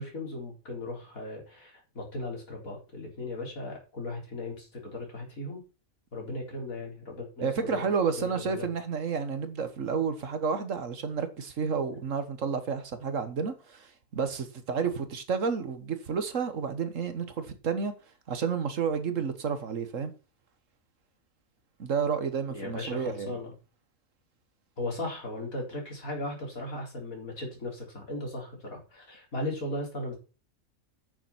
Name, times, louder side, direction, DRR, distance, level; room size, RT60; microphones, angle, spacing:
voice 1, 0.0-5.6 6.1-7.9 8.2-8.7 22.5-23.5 24.8-30.1, left 2 dB, 75° left, 4.6 m, -37 dB
voice 2, 7.4-17.9 18.3-20.1 21.8-23.4, right 6 dB, 65° right, 1.6 m, -30 dB
8.9 x 7.2 x 5.9 m
omnidirectional pair, 1.5 m